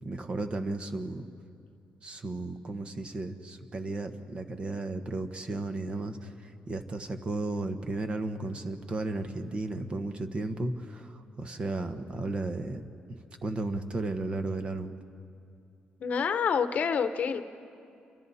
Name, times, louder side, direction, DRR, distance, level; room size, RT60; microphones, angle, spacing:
voice 1, 0.0-1.3 2.0-15.0, right 2 dB, 35° right, 7 dB, 1.2 m, -34 dB
voice 2, 16.0-17.4, left 6 dB, 55° left, 9 dB, 1.0 m, -27 dB
29.0 x 24.5 x 4.2 m, 2.5 s
cardioid pair, 125°, 3 cm